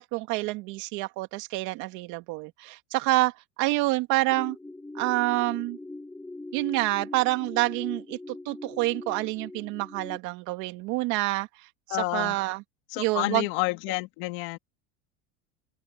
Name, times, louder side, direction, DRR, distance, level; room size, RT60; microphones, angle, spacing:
voice 1, 0.0-3.3 3.6-4.6 4.9-5.8 6.5-11.5 11.9-12.6 13.0-13.5, right 20 dB, 65° right, 2.5 m, -27 dB
sound 1, 4.3-10.2, left 2 dB, 5° left, 1.8 m, -41 dB
voice 2, 11.9-12.4 12.9-14.6, left 23 dB, 70° left, 2.4 m, -29 dB
cardioid pair, 140°, 32 cm